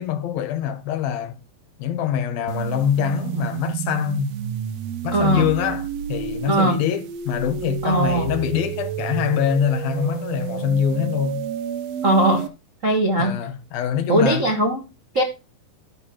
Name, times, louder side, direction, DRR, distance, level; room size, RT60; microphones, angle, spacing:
voice 1, 0.0-1.4 1.8-4.3 5.0-11.5 13.2-14.5, left 9 dB, 80° left, 3.0 m, -24 dB
sound 1, 2.5-12.5, right 9 dB, 90° right, 1.4 m, -30 dB
voice 2, 5.1-5.4 6.5-6.8 7.8-8.3 12.0-12.5 12.8-13.4 14.1-14.8 15.1-15.2, right 2 dB, 60° right, 0.8 m, -19 dB
12.0 x 5.9 x 4.6 m
omnidirectional pair, 4.2 m